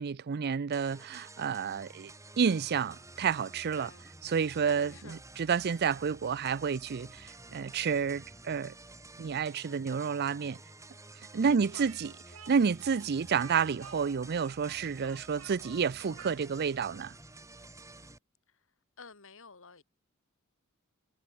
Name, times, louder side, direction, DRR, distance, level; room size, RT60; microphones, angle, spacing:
voice 1, 0.0-2.1 2.4-3.9 4.3-8.7 9.2-10.6 11.3-12.1 12.5-17.1, right 6 dB, 50° right, 0.4 m, -30 dB
sound 1, 0.7-18.2, right 2 dB, 15° right, 5.1 m, -51 dB
voice 2, 3.7-4.1 4.9-5.2 10.0-10.3 11.4-11.9 18.5-18.7 19.0-19.8, left 4 dB, 65° left, 3.6 m, -52 dB
Speech, 11.8-16.9, right 6 dB, 70° right, 3.9 m, -51 dB
head